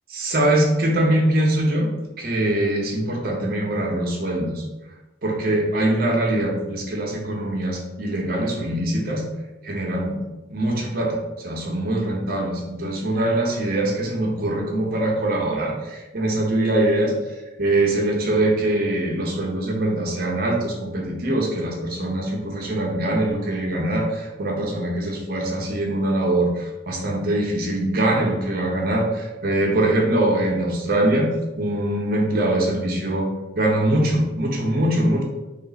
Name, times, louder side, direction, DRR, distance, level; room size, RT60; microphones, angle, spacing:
voice 1, 0.1-1.9 2.2-4.6 5.2-9.2 9.6-10.2 10.5-17.1 17.6-33.3 33.6-35.2, right 1 dB, 50° right, 0 dB, 0.8 m, -23 dB
3.2 x 2.4 x 4.0 m, 1.0 s
head